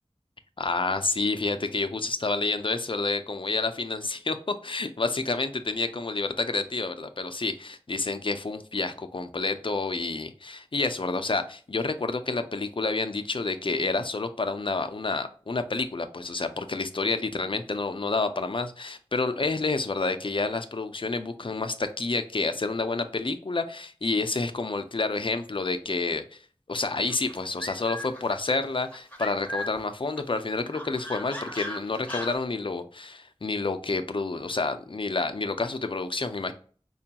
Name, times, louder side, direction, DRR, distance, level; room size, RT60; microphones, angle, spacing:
voice 1, 0.6-26.4 26.7-36.5, left 3 dB, 50° left, 8 dB, 0.5 m, -29 dB
sound 1, 27.1-29.8 30.2-32.4, left 1 dB, 15° left, 0.8 m, -37 dB
4.8 x 2.2 x 2.8 m, 0.42 s
wide cardioid pair, 45°, 11 cm